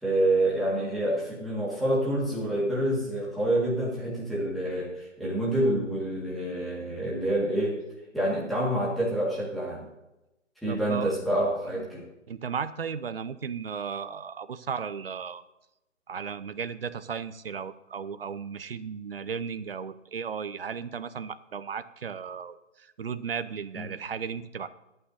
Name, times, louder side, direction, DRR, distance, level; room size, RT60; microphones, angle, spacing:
voice 1, 0.0-7.8 8.1-9.9 10.6-12.0 23.7-23.9, right 1 dB, ahead, -7 dB, 1.8 m, -27 dB
voice 2, 10.7-11.2 11.7-11.9 12.3-15.4 16.1-24.7, right 6 dB, 45° right, 13 dB, 0.8 m, -35 dB
24.5 x 9.0 x 2.7 m, 0.95 s
hypercardioid pair, 160°, 39 cm